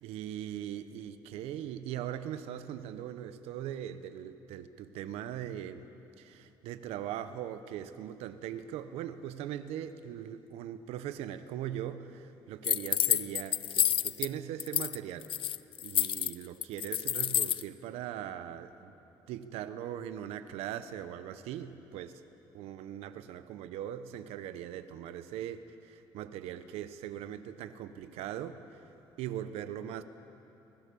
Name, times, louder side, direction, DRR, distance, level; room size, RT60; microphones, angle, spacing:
voice 1, 0.0-5.9 6.2-15.3 15.8-18.9 19.3-22.2 22.5-28.8 29.2-30.0, right 10 dB, 80° right, 11 dB, 1.1 m, -40 dB
sound 1, 12.6-14.3 14.6-15.0 15.2-17.6, left 11 dB, 60° left, 0.6 m, -29 dB
29.0 x 20.0 x 7.1 m, 2.9 s
cardioid pair, 85°, 10 cm